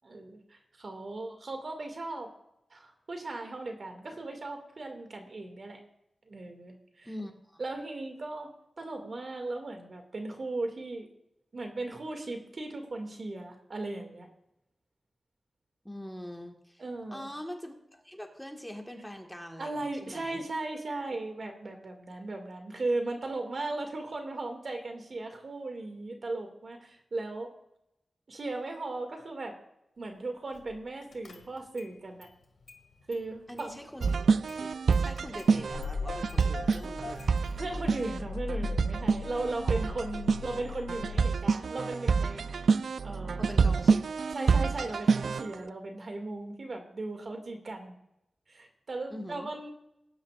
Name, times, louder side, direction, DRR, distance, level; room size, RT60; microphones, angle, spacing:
voice 1, 0.0-2.3 2.7-5.8 6.3-7.1 7.6-11.1 11.5-14.3 16.8-17.3 19.6-27.5 28.3-29.6 30.0-32.3 33.1-33.7 37.6-42.5 43.0-43.5 44.3-47.9 48.5-49.7, right 2 dB, 55° right, 4 dB, 2.2 m, -37 dB
voice 2, 7.0-7.6 15.9-16.8 17.1-20.4 33.5-34.1 34.6-37.3 39.6-39.8 43.4-44.3 49.1-49.5, equal, 5° left, 2 dB, 1.6 m, -43 dB
Car / Engine starting, 30.6-30.8 31.1-31.9 32.2-33.3 33.6-41.3, left 4 dB, 80° left, 1.9 m, -41 dB
sound 1, 34.0-45.5, right 5 dB, 75° right, 0.4 m, -27 dB
19.0 x 10.5 x 2.5 m, 0.80 s
wide cardioid pair, 80°, 0 cm